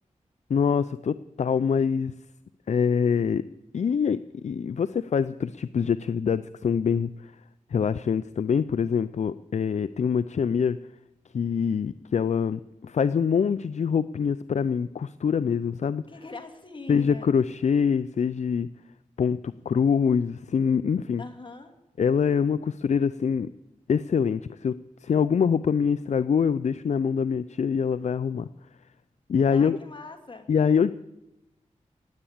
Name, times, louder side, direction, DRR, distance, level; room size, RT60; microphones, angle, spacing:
voice 1, 0.5-2.1 2.7-3.4 3.7-7.3 7.7-10.8 11.3-16.0 16.9-18.7 19.2-21.2 22.0-23.5 23.9-24.8 25.0-28.5 29.3-29.8 30.5-30.9, left 6 dB, 65° left, 14 dB, 0.4 m, -24 dB
voice 2, 16.1-17.4 21.2-21.7 29.5-30.5, left 3 dB, 40° left, 4 dB, 2.3 m, -42 dB
17.0 x 9.1 x 8.6 m, 0.93 s
wide cardioid pair, 70°, 13 cm